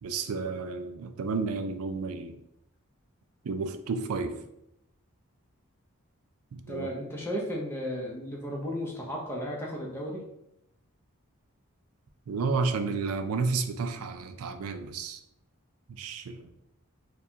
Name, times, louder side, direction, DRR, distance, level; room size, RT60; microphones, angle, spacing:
voice 1, 0.0-2.4 3.4-4.4 6.5-6.9 12.3-15.2 15.9-16.5, right 4 dB, 75° right, 8 dB, 0.4 m, -31 dB
voice 2, 6.7-10.2, equal, 10° left, -3 dB, 0.7 m, -34 dB
4.6 x 2.2 x 2.8 m, 0.83 s
head